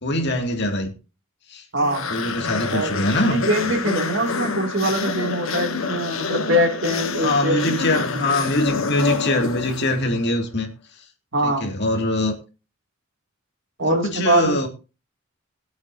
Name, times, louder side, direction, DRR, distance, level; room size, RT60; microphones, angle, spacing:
voice 1, 0.0-0.9 1.5-1.6 2.1-3.7 7.2-10.7 11.4-12.4 13.8-14.7, left 1 dB, 55° left, 2.4 m, -23 dB
voice 2, 1.7-2.1 2.7-8.3 11.3-11.7 13.8-14.6, right 1 dB, 60° right, 2.5 m, -23 dB
sound 1, 1.8-10.2, left 4 dB, 75° left, 1.4 m, -27 dB
20.5 x 8.1 x 2.7 m
head